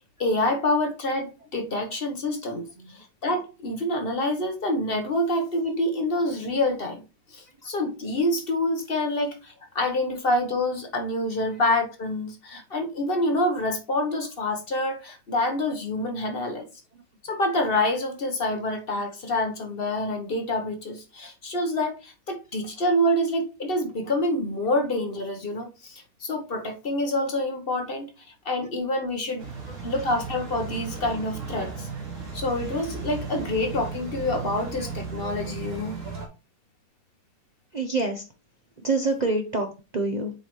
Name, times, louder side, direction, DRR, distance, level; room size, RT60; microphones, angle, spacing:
voice 1, 0.2-7.0 7.3-16.7 17.2-28.1 28.4-29.5 29.8-31.9 32.3-36.0, left 1 dB, 40° left, 1.1 m, -27 dB
sound 1, 29.4-36.3, right 4 dB, 45° right, 2.1 m, -35 dB
voice 2, 37.7-38.2 38.8-40.3, right 3 dB, 60° right, 0.4 m, -27 dB
7.9 x 4.9 x 3.1 m
omnidirectional pair, 2.0 m